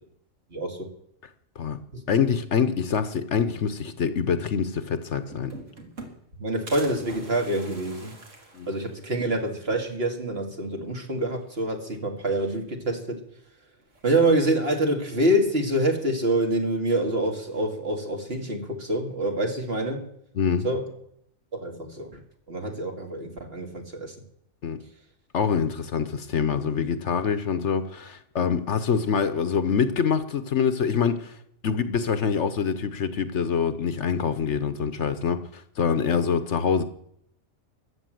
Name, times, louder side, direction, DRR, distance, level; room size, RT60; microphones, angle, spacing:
voice 1, 0.5-0.9 1.9-2.1 6.4-8.2 8.7-13.2 14.0-20.1 20.6-20.9 21.5-22.1 22.5-24.1, right 1 dB, 45° right, 2 dB, 2.5 m, -26 dB
voice 2, 2.1-5.5 8.5-8.7 20.3-20.7 24.6-24.8 25.3-31.3 31.6-36.8, left 6 dB, 60° left, 11 dB, 1.2 m, -25 dB
sound 1, 4.7-4.8 5.0-6.3 6.7-9.3 9.7-9.8 10.0-10.1 11.3-11.8 12.1-12.9 13.9-14.5, right 2 dB, 65° right, 2.7 m, -44 dB
15.0 x 10.5 x 7.7 m, 0.72 s
omnidirectional pair, 1.4 m